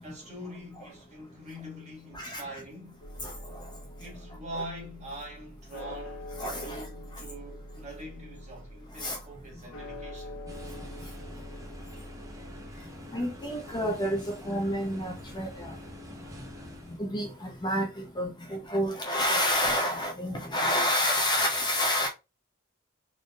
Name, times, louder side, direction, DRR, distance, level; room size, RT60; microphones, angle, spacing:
voice 1, 0.0-3.1 4.0-10.4, equal, 35° right, 1.8 m, -43 dB
voice 2, 2.1-2.6 3.2-3.3 5.8-5.9 6.4-6.8 9.0-9.2 13.1-15.7 17.0-22.1, equal, 20° left, 0.7 m, -29 dB
sound 1, 3.0-12.8, left 1 dB, 80° left, 1.0 m, -44 dB
sound 2, 10.5-17.0, left 1 dB, 15° right, 0.8 m, -46 dB
4.0 x 3.4 x 2.4 m
head